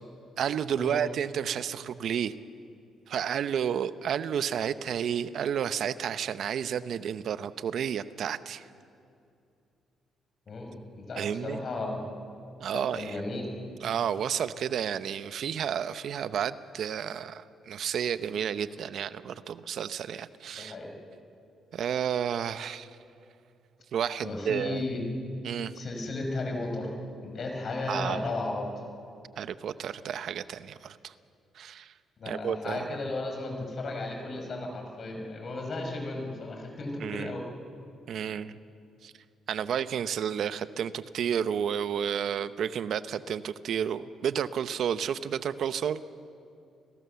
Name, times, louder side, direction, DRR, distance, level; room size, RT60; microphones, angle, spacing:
voice 1, 0.4-2.3 3.1-8.6 11.2-11.6 12.6-13.2 13.8-20.7 21.7-22.9 23.9-24.8 25.4-25.7 27.9-28.3 29.4-31.1 31.6-31.9 32.3-32.9 37.0-37.3 38.1-38.6 39.0-39.1 39.5-46.0, right 8 dB, 65° right, 13 dB, 0.8 m, -31 dB
voice 2, 10.5-12.0 12.7-13.5 20.5-20.9 24.2-25.0 25.7-26.9 27.2-28.7 32.2-37.5, left 2 dB, 50° left, 2 dB, 6.0 m, -34 dB
30.0 x 20.5 x 7.0 m, 2.5 s
cardioid pair, 90°, 0 cm